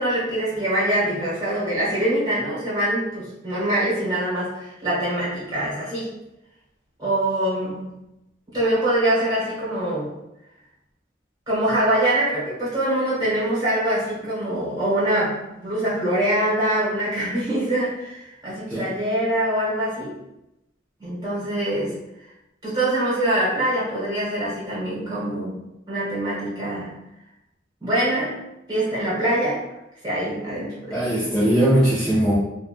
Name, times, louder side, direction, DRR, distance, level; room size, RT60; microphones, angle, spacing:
voice 1, 0.0-6.1 7.0-7.9 8.5-10.1 11.5-20.2 21.0-22.0 22.6-25.6 25.9-26.9 27.8-28.4 28.7-29.6 30.0-31.1, right 1 dB, 20° right, -9 dB, 1.2 m, -24 dB
voice 2, 30.9-32.4, equal, 5° left, -10 dB, 0.5 m, -19 dB
3.1 x 2.2 x 2.5 m, 0.90 s
head